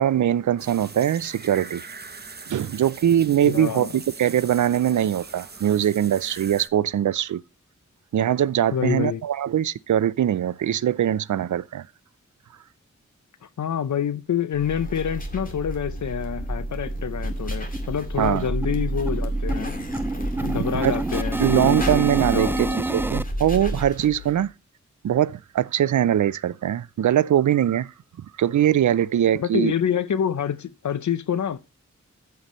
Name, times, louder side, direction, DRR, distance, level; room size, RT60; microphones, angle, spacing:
voice 1, 0.0-1.8 2.5-3.9 4.2-7.4 8.1-11.8 18.2-18.5 20.8-20.9 21.4-24.5 25.0-27.9 28.4-29.7, right 10 dB, 75° right, 0.5 m, -22 dB
sound 1, 0.6-6.7, right 4 dB, 35° right, 0.9 m, -41 dB
voice 2, 3.4-4.0 8.7-9.2 13.4-19.7 20.4-22.8 29.3-31.6, left 8 dB, 70° left, 0.6 m, -27 dB
sound 2, 14.5-24.4, right 1 dB, 30° left, 2.3 m, -30 dB
sound 3, 16.0-16.1 16.4-16.5 16.8-17.0 17.3-23.2, right 2 dB, 5° right, 0.4 m, -29 dB
14.0 x 5.7 x 3.0 m
wide cardioid pair, 90°, 30 cm